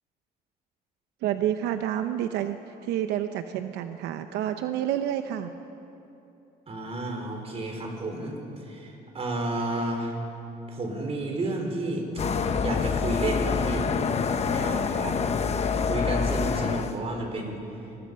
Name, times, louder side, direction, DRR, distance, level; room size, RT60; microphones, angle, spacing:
voice 1, 1.2-5.5, right 11 dB, 85° right, 8 dB, 0.8 m, -29 dB
voice 2, 6.7-10.2 10.7-12.2 12.6-13.9 14.5-15.2 15.9-17.6, right 2 dB, 35° right, 2 dB, 4.8 m, -31 dB
sound 1, 12.2-16.9, left 5 dB, 40° left, 1.1 m, -26 dB
26.5 x 21.0 x 5.6 m, 2.9 s
cardioid pair, 110°, 17 cm